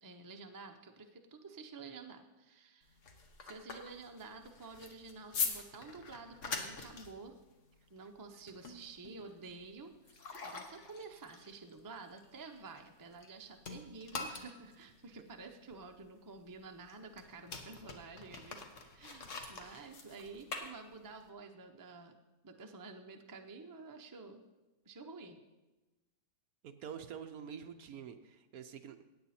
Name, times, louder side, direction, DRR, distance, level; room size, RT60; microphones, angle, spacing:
voice 1, 0.0-3.0 3.4-7.4 7.9-18.6 18.9-22.1 22.4-24.4 24.8-25.4, right 4 dB, 25° right, 4 dB, 0.4 m, -50 dB
sound 1, 2.8-13.3 13.6-21.3, left 4 dB, 50° left, 1.4 m, -44 dB
voice 2, 26.6-29.0, right 7 dB, 65° right, 8 dB, 1.0 m, -47 dB
16.5 x 8.9 x 4.3 m, 1.1 s
omnidirectional pair, 1.8 m